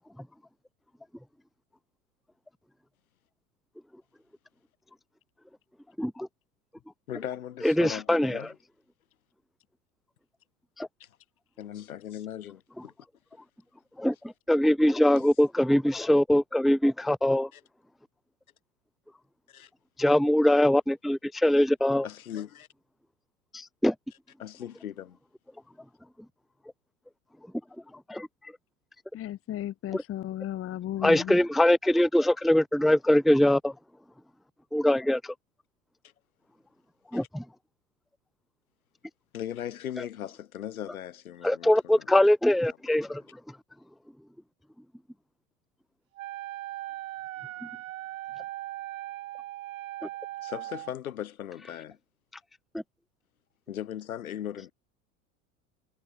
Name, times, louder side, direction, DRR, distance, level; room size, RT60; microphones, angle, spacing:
voice 1, 7.1-8.6 11.0-11.1 11.6-12.9 17.5-17.6 19.5-19.7 22.0-22.7 24.4-25.2 36.0-36.1 37.1-37.2 39.3-42.1 43.1-43.2 50.4-52.0 53.7-54.7, left 10 dB, 80° left, 3.5 m, -38 dB
voice 2, 7.6-8.4 10.8-10.9 14.0-14.1 14.5-17.5 20.0-22.1 23.5-23.9 28.1-28.3 29.9-30.0 31.0-33.7 34.7-35.2 37.1-37.4 41.4-43.2, left 1 dB, ahead, 0.6 m, -22 dB
voice 3, 29.1-31.4, left 12 dB, 30° left, 1.1 m, -35 dB
Wind instrument woodwind instrument, 46.1-50.9, right 15 dB, 70° right, 2.9 m, -39 dB
hypercardioid pair, 85°, 42 cm